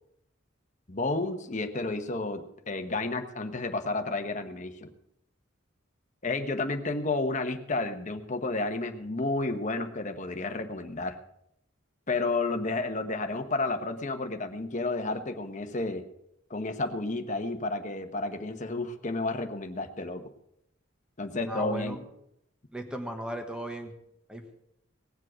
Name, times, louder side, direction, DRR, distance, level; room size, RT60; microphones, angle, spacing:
voice 1, 0.9-4.9 6.2-11.2 12.1-16.0 16.5-20.3 21.2-22.0, left 2 dB, 40° left, 6 dB, 1.2 m, -31 dB
voice 2, 21.5-22.0 22.7-23.9 24.3-24.4, right 1 dB, 5° right, 5 dB, 1.3 m, -36 dB
18.5 x 7.6 x 6.2 m, 0.77 s
head